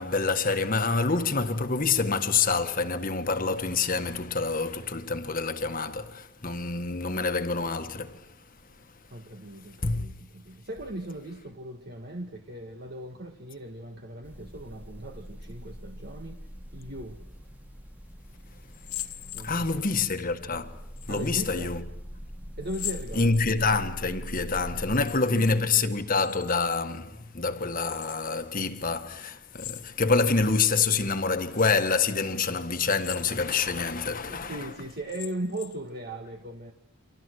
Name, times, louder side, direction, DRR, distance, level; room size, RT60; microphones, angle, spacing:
voice 1, 0.0-8.3 9.8-10.1 19.4-20.8 21.1-21.8 23.1-34.6, left 4 dB, 40° left, 1.7 m, -27 dB
voice 2, 9.1-16.5 16.7-17.2 19.3-20.0 21.1-21.8 22.6-23.4 24.9-25.9 34.3-36.7, right 1 dB, 45° right, 1.8 m, -38 dB
sound 1, 14.2-25.0, equal, 5° right, 2.2 m, -42 dB
sound 2, 18.7-20.0 21.0-21.6 22.6-23.8 24.8-25.6 25.8-26.8 27.8-28.4 29.5-30.3 30.8-30.9 31.5-32.0 32.8-33.6 34.1-34.2 34.9-35.9, left 14 dB, 75° left, 1.7 m, -41 dB
29.5 x 25.5 x 6.5 m
head